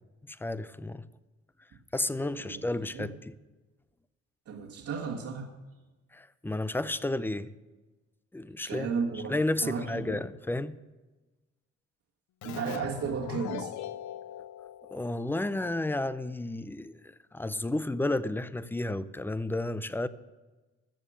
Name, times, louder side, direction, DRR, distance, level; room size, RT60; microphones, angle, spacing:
voice 1, 0.3-1.1 1.9-3.4 6.1-7.5 8.3-8.9 9.3-10.8 14.9-20.1, left 2 dB, 5° left, 0.5 m, -32 dB
voice 2, 4.5-5.5 8.6-10.2 12.4-13.7, right 5 dB, 65° right, 1.7 m, -34 dB
Keyboard (musical), 12.4-15.8, left 12 dB, 70° left, 0.5 m, -41 dB
13.5 x 7.3 x 6.2 m
cardioid pair, 90°, 30 cm